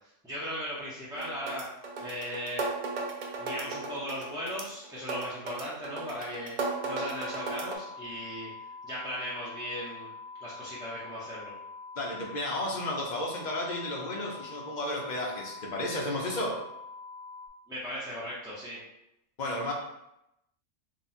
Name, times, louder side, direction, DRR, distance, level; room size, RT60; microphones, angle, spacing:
voice 1, 0.2-1.7 2.0-2.7 3.4-8.5 8.8-10.1 10.4-11.5 17.7-18.8, equal, 5° right, -9 dB, 0.6 m, -37 dB
sound 1, 1.2-7.8, right 3 dB, 55° right, 0.5 m, -36 dB
sound 2, 6.6-17.5, left 4 dB, 65° left, 1.3 m, -45 dB
voice 2, 12.0-16.6 19.4-19.7, left 1 dB, 40° left, -1 dB, 0.8 m, -33 dB
3.7 x 2.3 x 4.2 m, 0.84 s
omnidirectional pair, 1.3 m